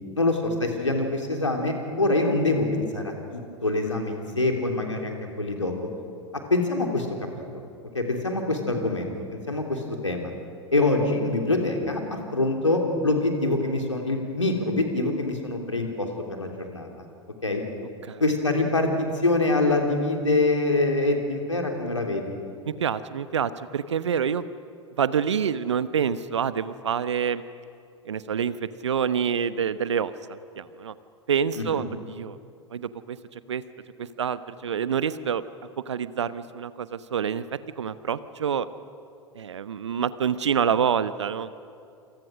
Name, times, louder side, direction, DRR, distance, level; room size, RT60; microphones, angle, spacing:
voice 1, 0.1-5.8 6.3-7.3 7.9-10.3 10.7-16.9 17.4-17.6 18.2-22.3 31.5-31.9, left 2 dB, 85° left, 2 dB, 3.5 m, -25 dB
voice 2, 22.7-24.4 25.0-27.4 28.1-30.9 31.3-32.4 32.7-33.6 34.0-35.4 35.9-37.4 37.8-38.7 39.3-41.5, right 7 dB, 70° right, 14 dB, 1.0 m, -27 dB
27.5 x 27.0 x 6.4 m, 2.5 s
figure-of-eight pair, 85°, 15 cm